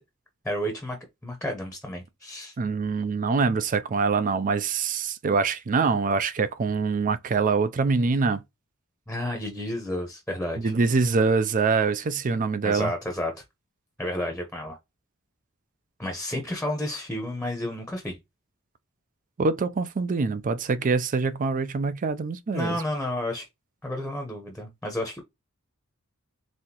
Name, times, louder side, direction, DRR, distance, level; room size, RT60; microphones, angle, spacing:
voice 1, 0.4-1.0 1.2-2.5 9.1-10.7 12.6-13.3 14.0-14.8 16.0-18.2 22.5-23.5 23.8-25.2, left 1 dB, 5° left, 0.8 m, -31 dB
voice 2, 2.6-8.4 10.6-12.9 19.4-22.8, right 4 dB, 40° right, 0.4 m, -24 dB
4.1 x 3.7 x 2.8 m
head